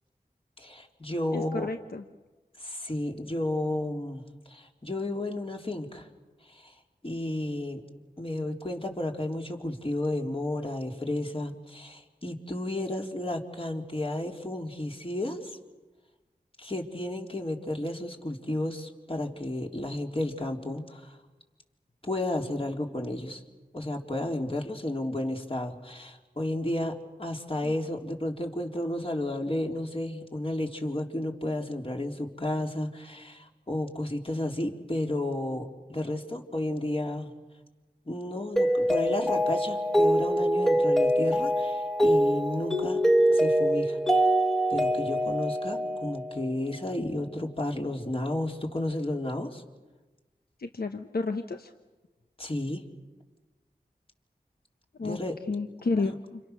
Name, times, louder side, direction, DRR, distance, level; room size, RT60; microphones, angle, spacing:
voice 1, 0.6-1.7 2.6-4.2 4.5-6.1 6.5-6.7 7.0-7.8 8.2-15.6 16.6-21.2 22.0-23.4 23.7-37.3 38.1-43.0 43.3-44.0 44.7-49.6 52.4-52.9 55.0-55.4 55.9-56.0, left 1 dB, 35° left, 1 dB, 3.8 m, -32 dB
voice 2, 1.3-2.0 50.6-51.7 55.0-55.2 55.5-56.4, left 3 dB, 75° left, 6 dB, 1.2 m, -31 dB
Mallet percussion, 38.6-46.7, equal, ahead, 1.4 m, -24 dB
29.0 x 28.5 x 6.7 m, 1.2 s
wide cardioid pair, 45°, 16 cm